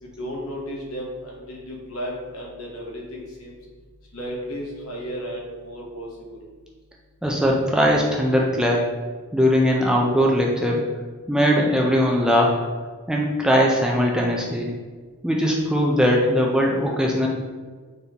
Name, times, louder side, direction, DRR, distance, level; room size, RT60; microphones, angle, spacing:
voice 1, 0.0-3.6 4.1-6.4, equal, 65° left, -2 dB, 1.0 m, -34 dB
voice 2, 7.2-8.9 9.3-10.9 11.3-12.7 13.1-14.7 15.2-17.3, equal, 5° right, -2 dB, 0.3 m, -20 dB
4.0 x 3.5 x 2.8 m, 1.5 s
head